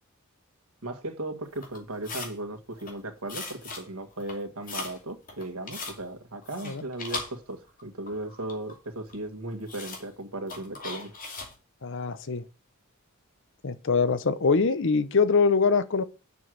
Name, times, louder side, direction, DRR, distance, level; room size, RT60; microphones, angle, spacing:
voice 1, 0.8-11.2, right 2 dB, 85° right, 1.8 m, -36 dB
sound 1, 1.6-2.4 2.7-3.0 3.3-3.9 4.1-5.0 5.3-6.0 6.4-7.8 8.1-8.8 9.1-9.2 9.7-10.1 10.5-11.5, left 3 dB, 40° left, 2.6 m, -38 dB
voice 2, 11.8-12.4 13.6-16.0, left 4 dB, 60° left, 0.8 m, -23 dB
6.8 x 6.4 x 7.8 m
head